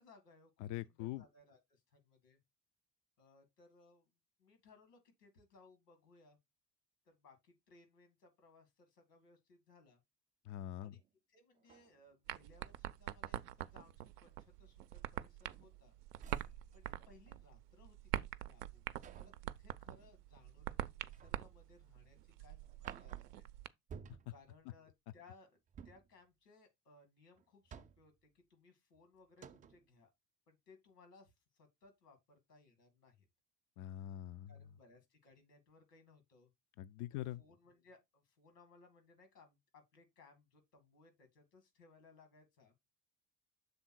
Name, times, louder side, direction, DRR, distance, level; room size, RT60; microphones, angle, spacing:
voice 1, 0.0-2.4 3.2-4.1 4.4-6.4 7.0-10.0 10.8-11.0 11.3-16.0 16.7-23.5 24.3-25.6 25.8-30.1 30.5-33.3 34.5-36.5 37.1-42.7, left 3 dB, 80° left, 2.2 m, -65 dB
voice 2, 0.6-1.2 10.5-10.9 33.8-34.5 36.8-37.4, left 13 dB, 40° left, 0.4 m, -43 dB
sound 1, 11.0-11.1 11.6-12.8 13.3-13.7 14.3-14.5 14.9-15.8 16.2-17.7 19.0-19.5 21.1-21.6 22.0-22.1 22.6-23.4 23.9-24.5 25.7-26.2 27.4-28.2 28.9-29.0 29.4-29.9, right 7 dB, 20° right, 0.4 m, -56 dB
sound 2, 12.3-23.7, right 13 dB, 75° right, 0.6 m, -45 dB
6.9 x 3.6 x 4.4 m
figure-of-eight pair, 60°, 47 cm